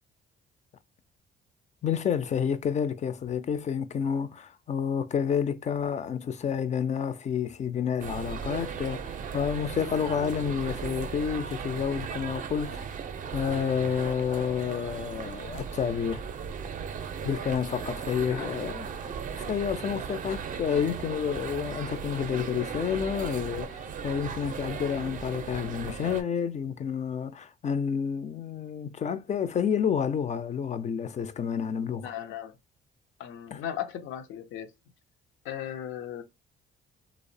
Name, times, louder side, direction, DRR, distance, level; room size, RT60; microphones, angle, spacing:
voice 1, 1.8-12.9 13.3-16.2 17.2-32.1 33.5-33.6, left 7 dB, 35° left, 0.4 m, -29 dB
sound 1, 8.0-26.2, right 7 dB, 45° right, 0.4 m, -37 dB
voice 2, 18.2-18.5 32.0-32.6 33.2-34.7 35.4-36.2, left 10 dB, 85° left, 0.5 m, -37 dB
2.7 x 2.0 x 2.5 m
cardioid pair, 90°, 20 cm